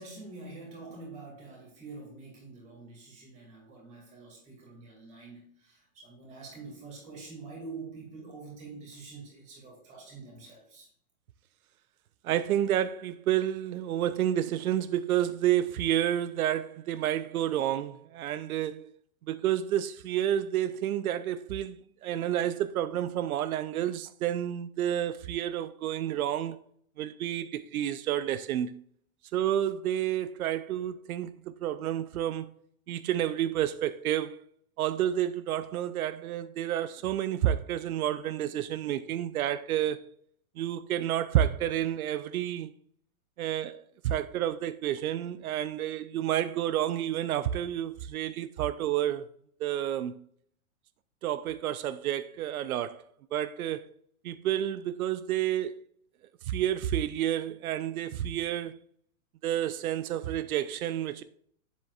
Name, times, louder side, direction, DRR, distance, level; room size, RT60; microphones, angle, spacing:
voice 1, 0.0-10.9, right 3 dB, 15° right, 2.3 m, -46 dB
voice 2, 12.2-18.9 19.3-26.6 27.0-28.7 29.3-31.3 31.6-32.5 32.9-34.4 34.8-40.0 40.6-42.7 43.4-49.2 49.6-50.2 51.2-53.0 53.3-53.8 54.2-55.7 56.5-58.8 59.4-61.2, right 11 dB, 85° right, 0.6 m, -30 dB
7.3 x 7.3 x 2.4 m
hypercardioid pair, 170°, 42 cm